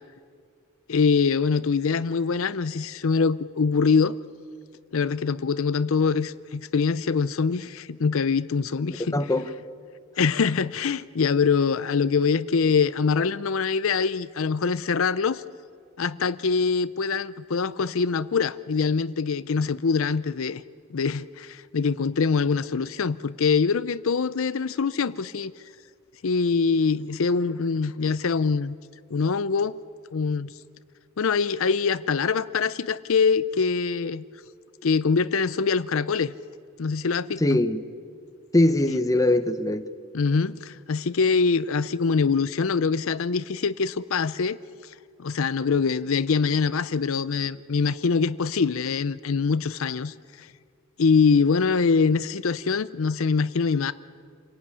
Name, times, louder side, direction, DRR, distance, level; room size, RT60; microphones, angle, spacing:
voice 1, 0.9-4.2 4.9-9.2 10.2-15.4 16.0-20.6 20.9-25.5 26.2-28.8 29.1-29.8 30.1-30.5 31.2-34.2 34.8-36.3 36.8-37.6 38.9-39.0 40.1-44.6 45.2-50.5 51.0-53.9, left 5 dB, 70° left, 0.5 m, -24 dB
voice 2, 9.1-9.5 37.4-37.8 38.5-39.9, left 1 dB, 15° left, 0.9 m, -21 dB
27.0 x 17.5 x 9.8 m
head